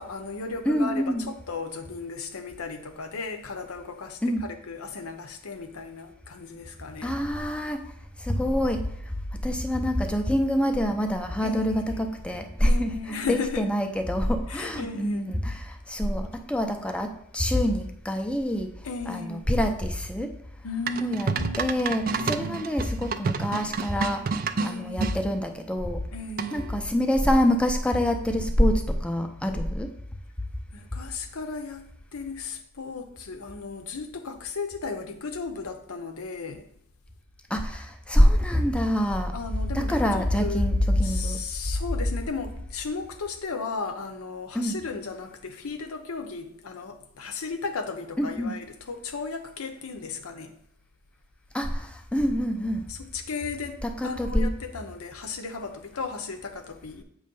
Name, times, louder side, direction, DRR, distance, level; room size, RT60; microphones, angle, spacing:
voice 1, 0.0-7.2 11.4-12.2 12.6-13.7 14.5-15.3 18.8-19.5 20.6-22.7 24.6-25.2 26.1-26.7 30.7-36.7 39.3-40.7 41.0-50.5 52.9-57.0, left 4 dB, 75° left, 0.8 m, -35 dB
voice 2, 0.7-1.3 4.2-4.4 7.0-7.8 8.2-8.8 9.4-12.9 13.3-18.7 19.1-20.3 21.0-21.3 21.6-24.2 24.6-26.0 26.5-29.9 37.5-39.3 39.7-41.4 44.5-44.8 48.2-48.5 51.5-52.8 53.8-54.5, equal, 5° left, 0.6 m, -25 dB
sound 1, 20.9-25.2 26.4-26.8, right 5 dB, 40° right, 0.4 m, -29 dB
7.6 x 3.2 x 5.3 m
head